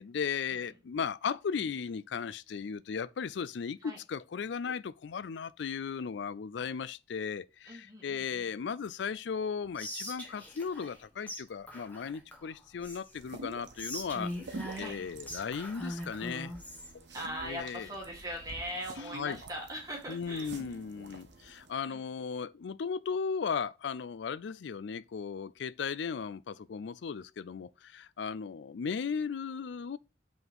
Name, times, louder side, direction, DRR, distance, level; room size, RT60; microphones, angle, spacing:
voice 1, 0.0-16.5 16.9-17.0 17.4-17.9 19.0-19.4 20.1-30.0, left 6 dB, 70° left, 0.4 m, -36 dB
voice 2, 7.7-8.5 14.8-14.9 17.1-20.5 21.9-22.1, equal, 20° right, 1.7 m, -40 dB
Whispering, 9.8-11.0 11.3-11.4 11.7-13.2 13.7-16.9, equal, 10° left, 1.5 m, -41 dB
sound 1, 13.2-21.7, right 2 dB, 70° right, 1.1 m, -48 dB
5.8 x 3.9 x 5.3 m
head